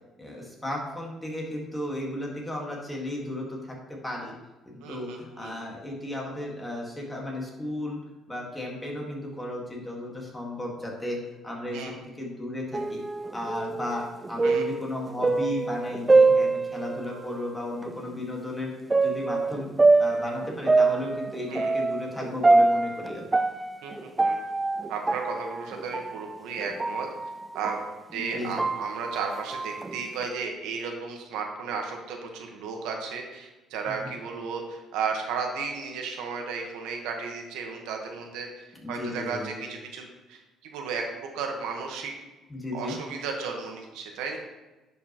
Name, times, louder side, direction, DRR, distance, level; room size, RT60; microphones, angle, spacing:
voice 1, 0.2-4.3 4.7-8.0 8.3-11.8 12.2-13.0 13.3-18.7 19.0-19.7 20.0-23.2 28.1-28.6 34.0-34.1 38.8-39.6 42.5-43.0, left 1 dB, 10° left, -2 dB, 1.8 m, -34 dB
voice 2, 4.8-5.5 11.7-12.0 14.4-14.7 21.5-21.8 23.8-24.4 24.9-27.1 27.5-27.8 28.1-41.1 41.3-42.1 42.7-44.4, right 5 dB, 90° right, 2 dB, 1.3 m, -34 dB
sound 1, 12.7-17.3 17.8-17.9 18.9-27.9 28.3-30.2, right 3 dB, 15° right, 0.3 m, -24 dB
10.5 x 5.4 x 3.0 m, 1.1 s
cardioid pair, 130°, 0 cm